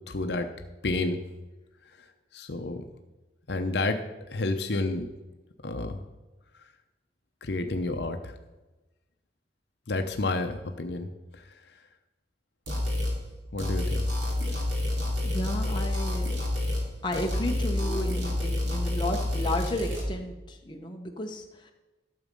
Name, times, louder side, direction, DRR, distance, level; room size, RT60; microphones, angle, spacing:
voice 1, 0.1-0.5 0.8-1.2 2.0-2.1 2.3-2.8 3.5-4.0 4.3-5.0 5.6-6.0 7.4-8.4 9.9-11.1 11.3-11.6 13.5-14.0, left 2 dB, 65° left, 6 dB, 0.8 m, -30 dB
sound 1, 12.7-13.2 13.6-16.9 17.1-20.0, left 1 dB, 85° right, 3.1 m, -28 dB
voice 2, 15.2-16.3 17.0-21.7, left 1 dB, 25° left, 2 dB, 1.1 m, -33 dB
12.5 x 7.4 x 5.4 m, 1.1 s
head